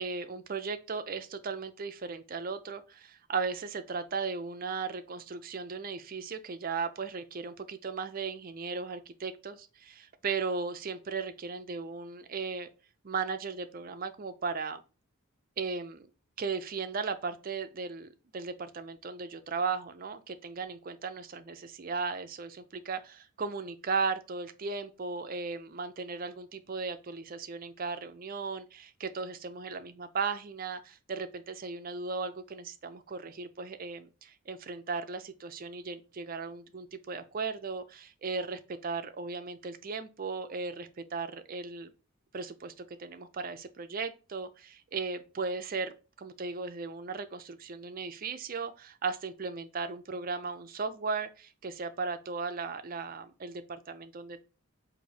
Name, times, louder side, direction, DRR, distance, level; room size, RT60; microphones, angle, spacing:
voice 1, 0.0-12.7 13.0-14.8 15.6-16.1 16.4-41.9 42.3-54.4, right 4 dB, 40° right, 0.5 m, -36 dB
4.0 x 2.7 x 4.8 m
head